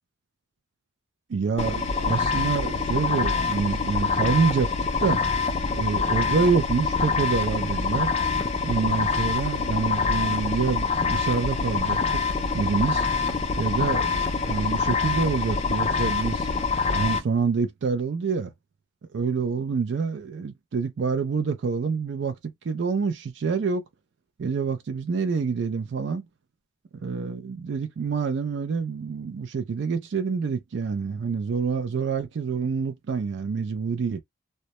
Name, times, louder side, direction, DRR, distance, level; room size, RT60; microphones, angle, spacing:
voice 1, 1.3-4.7 5.0-5.2 5.7-8.1 8.6-12.2 12.5-13.1 13.6-16.5 16.9-18.5 19.1-23.8 24.4-26.3 27.0-34.2, right 5 dB, 65° right, 0.4 m, -27 dB
sound 1, 1.6-17.2, left 4 dB, 30° left, 0.4 m, -25 dB
2.1 x 2.0 x 2.8 m
head